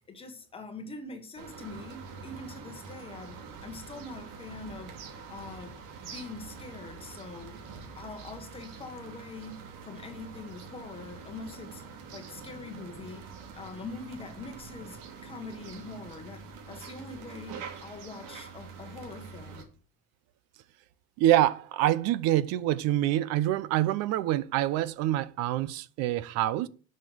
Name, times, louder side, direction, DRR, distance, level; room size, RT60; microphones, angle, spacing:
voice 1, 0.1-4.9 5.3-5.8 6.0-7.6 7.9-11.8 12.1-13.2 13.6-19.7, left 3 dB, 15° left, 1.4 m, -43 dB
sound 1, 1.4-19.6, right 5 dB, 90° right, 3.2 m, -45 dB
voice 2, 21.2-26.7, right 13 dB, 50° right, 0.8 m, -26 dB
10.5 x 6.6 x 6.5 m
cardioid pair, 180°, 34 cm